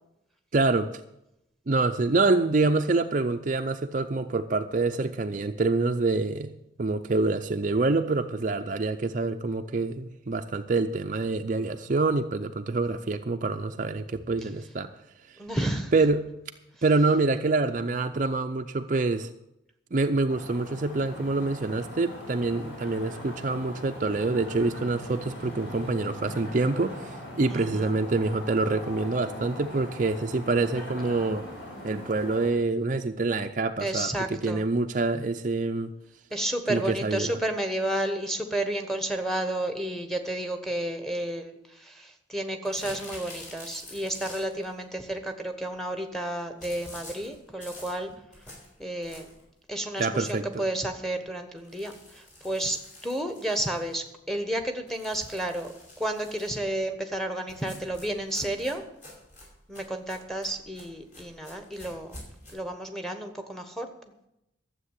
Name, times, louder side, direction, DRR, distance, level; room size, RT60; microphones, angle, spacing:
voice 1, 0.5-0.9 1.7-6.5 6.8-14.9 15.3-15.4 15.9-16.3 16.8-19.3 19.9-31.4 31.8-35.9 36.7-37.3 50.0-50.6, right 3 dB, 40° right, 7 dB, 0.5 m, -26 dB
voice 2, 15.4-15.9 27.5-27.9 33.8-34.6 36.3-48.1 48.8-49.3 49.7-55.7 56.0-58.8 59.7-62.2 62.5-63.9, right 1 dB, ahead, 6 dB, 1.2 m, -31 dB
sound 1, 20.3-32.5, left 1 dB, 60° left, 4.7 m, -41 dB
sound 2, 42.6-44.7 46.6-49.5 50.0-50.1 50.4-50.5 50.8-50.9 51.6-54.1 54.9-56.7 57.5-62.5, left 1 dB, 40° left, 5.3 m, -47 dB
13.0 x 7.7 x 8.2 m, 0.86 s
head